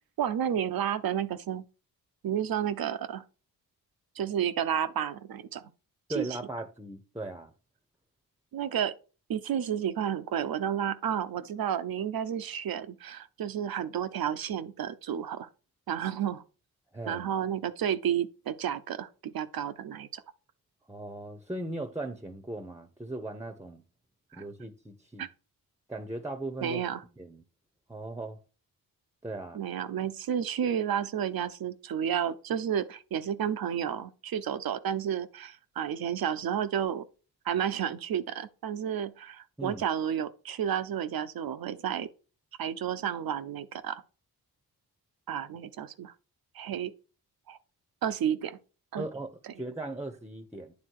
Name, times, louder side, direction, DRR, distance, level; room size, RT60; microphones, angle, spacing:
voice 1, 0.2-1.6 2.2-3.2 4.2-5.7 6.1-6.4 8.5-8.9 9.3-15.5 15.9-16.4 17.1-20.2 24.3-24.4 25.2-25.3 26.6-27.0 29.5-37.1 37.4-42.1 42.6-44.0 45.3-46.1 46.5-46.9 47.5-47.6 48.0-48.6 48.9-49.1 49.4-49.5, right 9 dB, 70° right, 0.8 m, -31 dB
voice 2, 6.1-7.5 16.9-17.2 20.9-23.8 24.3-25.3 25.9-26.8 27.2-27.4 27.9-28.4 29.2-29.6 39.6-39.8 49.0-50.7, right 2 dB, 10° right, 0.9 m, -38 dB
9.6 x 3.6 x 4.6 m
cardioid pair, 80°, 37 cm